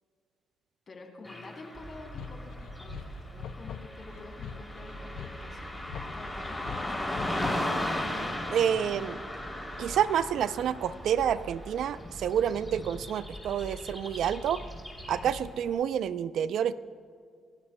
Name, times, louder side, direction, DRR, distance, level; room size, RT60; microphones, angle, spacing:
voice 1, 0.9-5.7 6.1-7.0, left 3 dB, 45° left, 1 dB, 2.9 m, -48 dB
Car passing by / Traffic noise roadway noise, 1.2-15.5, left 1 dB, 10° left, 2.9 m, -37 dB
sound 1, 1.7-15.4, right 1 dB, 30° right, 3.2 m, -46 dB
sound 2, 1.9-7.8, left 10 dB, 75° left, 0.4 m, -43 dB
voice 2, 8.5-9.2 9.8-14.6 15.1-16.8, right 9 dB, 70° right, 15 dB, 0.4 m, -28 dB
28.5 x 12.5 x 2.2 m, 2.3 s
cardioid pair, 90°, 0 cm